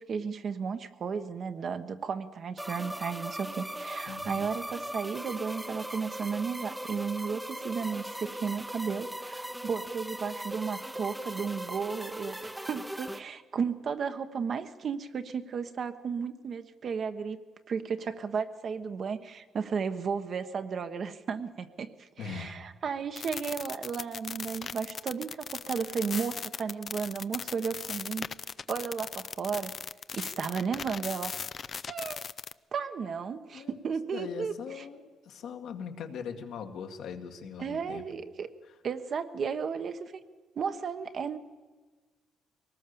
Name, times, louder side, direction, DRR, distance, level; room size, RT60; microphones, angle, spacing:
voice 1, 0.0-17.4 17.7-28.3 28.7-29.7 30.1-31.3 31.9-32.2 32.7-34.8 37.6-38.5 38.8-40.2 40.6-41.4, right 6 dB, 55° right, 8 dB, 1.3 m, -34 dB
sound 1, 2.6-13.2, right 1 dB, 5° right, 0.8 m, -39 dB
voice 2, 4.1-4.4 22.2-22.6 33.0-33.1 33.5-33.8 34.1-38.1 38.7-38.8, left 6 dB, 80° left, 4 dB, 2.1 m, -41 dB
sound 2, 23.2-32.5, left 6 dB, 45° left, 0.6 m, -38 dB
22.5 x 19.5 x 7.0 m, 1.4 s
cardioid pair, 90°, 0 cm